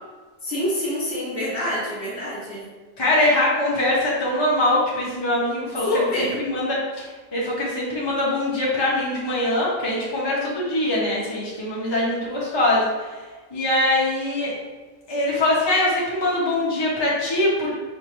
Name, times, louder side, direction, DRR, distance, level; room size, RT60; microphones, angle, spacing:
voice 1, 0.4-2.6 5.8-6.4, left 1 dB, 45° left, -6 dB, 1.3 m, -26 dB
voice 2, 3.0-13.2 13.5-14.5 15.1-17.7, left 1 dB, 25° left, -6 dB, 0.7 m, -23 dB
5.1 x 2.5 x 3.0 m, 1.4 s
omnidirectional pair, 1.4 m